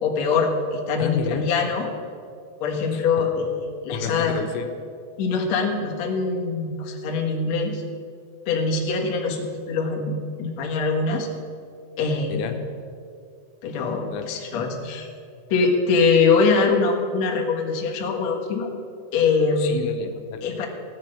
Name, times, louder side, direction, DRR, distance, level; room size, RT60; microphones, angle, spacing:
voice 1, 0.0-1.9 2.6-3.5 3.8-4.4 5.2-7.8 8.4-11.3 12.0-12.5 13.6-15.1 15.5-18.7 19.1-19.7 20.4-20.7, left 4 dB, 65° left, 0 dB, 1.7 m, -23 dB
voice 2, 1.0-1.5 2.9-3.3 3.9-4.7 12.3-12.6 14.1-14.3 19.6-20.5, left 8 dB, 85° left, 6 dB, 3.4 m, -31 dB
16.0 x 9.4 x 6.5 m, 2.4 s
omnidirectional pair, 5.7 m